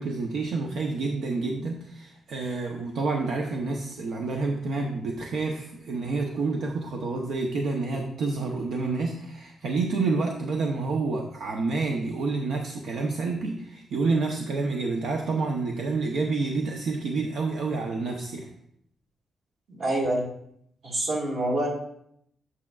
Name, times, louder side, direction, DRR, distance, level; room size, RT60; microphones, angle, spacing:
voice 1, 0.0-18.5, right 3 dB, 75° right, 1 dB, 0.7 m, -28 dB
voice 2, 19.7-20.2 20.8-21.7, right 1 dB, 55° right, -1 dB, 1.9 m, -27 dB
8.3 x 7.4 x 2.4 m, 0.72 s
wide cardioid pair, 145°, 0 cm